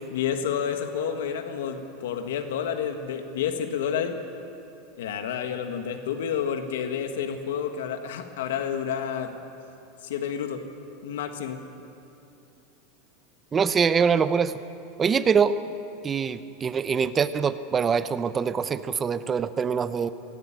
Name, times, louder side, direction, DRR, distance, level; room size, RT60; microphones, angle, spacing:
voice 1, 0.1-4.2 5.0-9.4 10.0-10.6 11.0-11.6, left 8 dB, 85° left, 7 dB, 1.6 m, -29 dB
voice 2, 13.5-14.6 15.0-15.6 16.0-20.1, right 6 dB, 20° right, 13 dB, 0.7 m, -24 dB
17.5 x 17.0 x 8.9 m, 2.7 s
supercardioid pair, 135°, 0 cm